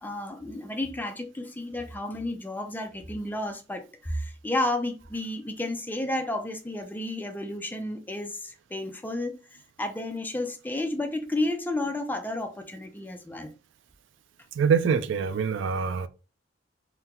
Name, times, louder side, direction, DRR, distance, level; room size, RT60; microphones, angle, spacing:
voice 1, 0.0-9.3 9.8-13.5, left 1 dB, 10° left, 0.4 m, -32 dB
voice 2, 14.6-16.1, right 6 dB, 75° right, 0.3 m, -24 dB
3.7 x 2.2 x 2.8 m
head